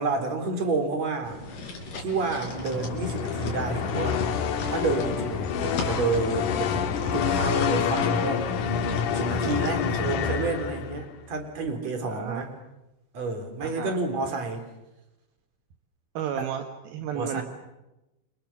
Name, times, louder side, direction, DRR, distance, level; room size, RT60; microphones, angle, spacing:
voice 1, 0.0-1.4 2.0-4.2 4.7-8.5 9.1-12.5 13.1-14.7 16.4-16.5 17.1-17.4, right 3 dB, 35° right, 7 dB, 4.2 m, -29 dB
sound 1, 1.2-10.0, left 2 dB, 40° left, 6.0 m, -38 dB
sound 2, 2.5-11.1, left 7 dB, 75° left, 1.9 m, -27 dB
voice 2, 12.0-12.4 13.6-14.0 16.1-17.4, right 9 dB, 70° right, 6 dB, 2.5 m, -33 dB
29.0 x 27.0 x 7.2 m, 0.96 s
omnidirectional pair, 5.9 m